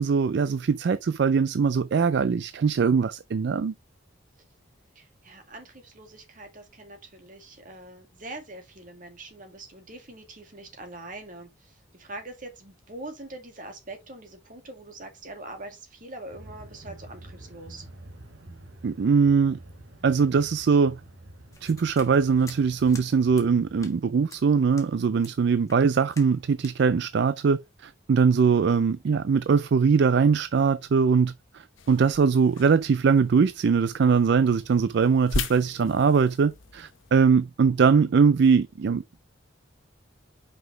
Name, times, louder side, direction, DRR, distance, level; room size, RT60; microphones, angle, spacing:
voice 1, 0.0-3.7 18.8-19.6 20.0-21.0 21.6-39.2, right 5 dB, 60° right, 0.4 m, -22 dB
voice 2, 5.0-17.9, right 2 dB, 45° right, 2.2 m, -43 dB
sound 1, 16.3-23.9, right 1 dB, 85° right, 1.5 m, -47 dB
sound 2, 21.5-23.1 23.4-23.5 23.8-24.0 24.3-24.4 24.8-24.9 25.2-25.3 25.7-25.8 26.1-26.3 26.6-26.8, left 3 dB, 15° left, 1.6 m, -47 dB
sound 3, 31.8-37.1, left 4 dB, 80° left, 0.8 m, -38 dB
5.7 x 5.4 x 3.3 m
head